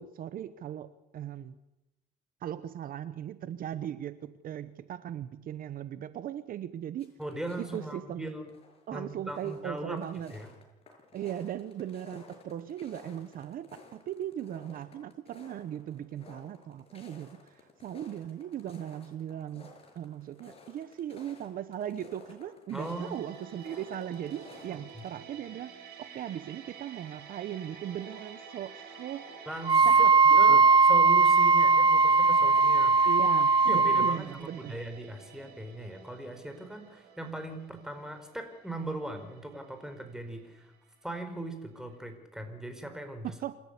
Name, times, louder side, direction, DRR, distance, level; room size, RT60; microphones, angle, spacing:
voice 1, 0.0-1.6 2.4-8.3 8.9-10.3 11.1-29.4 29.8-30.6 33.0-34.8 43.2-43.6, right 10 dB, 60° right, 14 dB, 1.0 m, -38 dB
sound 1, 7.0-7.9 8.3-8.9 9.2-25.1, left 3 dB, 35° left, 6.8 m, -54 dB
voice 2, 7.2-8.5 8.9-10.0 10.3-10.5 22.7-23.2 24.9-25.0 29.5-29.9 30.4-33.1 33.6-40.7 41.0-43.3, right 1 dB, 5° right, 7 dB, 4.7 m, -39 dB
sound 2, 22.8-41.6 41.9-42.1, right 6 dB, 80° right, 7.0 m, -49 dB
Wind instrument woodwind instrument, 29.7-34.2, right 4 dB, 25° right, 0.7 m, -20 dB
27.5 x 14.0 x 8.4 m, 0.95 s
cardioid pair, 110°, 17 cm